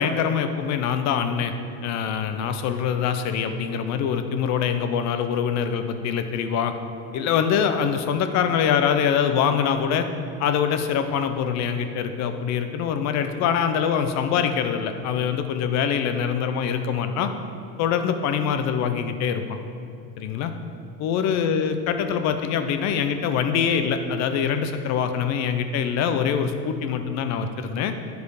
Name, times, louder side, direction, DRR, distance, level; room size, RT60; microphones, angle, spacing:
voice 1, 0.0-1.5 1.8-6.7 7.1-10.1 10.4-17.3 17.8-19.6 20.2-20.5 21.0-27.9, left 7 dB, 50° left, 8 dB, 0.8 m, -24 dB
10.5 x 4.9 x 4.9 m, 2.6 s
supercardioid pair, 125°, 34 cm